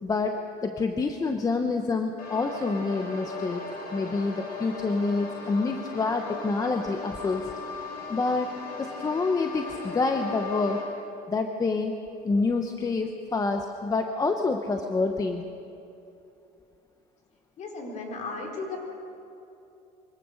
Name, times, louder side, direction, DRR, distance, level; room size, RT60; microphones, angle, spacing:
voice 1, 0.0-3.6 3.9-7.5 8.1-8.5 8.8-10.8 11.3-11.9 12.2-15.4, left 3 dB, 20° left, 5 dB, 0.9 m, -27 dB
sound 1, 2.2-10.8, left 3 dB, 65° left, 5.5 m, -38 dB
voice 2, 17.6-18.8, left 3 dB, 45° left, 1 dB, 4.2 m, -35 dB
24.0 x 17.0 x 6.5 m, 2.8 s
cardioid pair, 130°, 16 cm